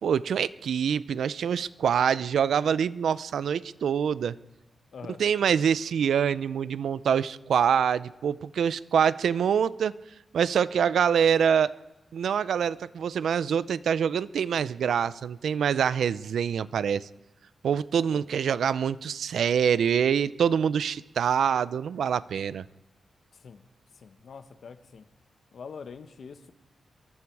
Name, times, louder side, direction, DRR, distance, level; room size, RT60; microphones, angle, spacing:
voice 1, 0.0-4.3 5.2-9.9 10.3-11.7 12.1-17.1 17.6-22.6, right 7 dB, 80° right, 17 dB, 0.6 m, -25 dB
voice 2, 24.0-25.0 25.5-26.5, left 6 dB, 55° left, 9 dB, 1.5 m, -44 dB
25.5 x 23.0 x 4.8 m, 1.0 s
wide cardioid pair, 160°, 0 cm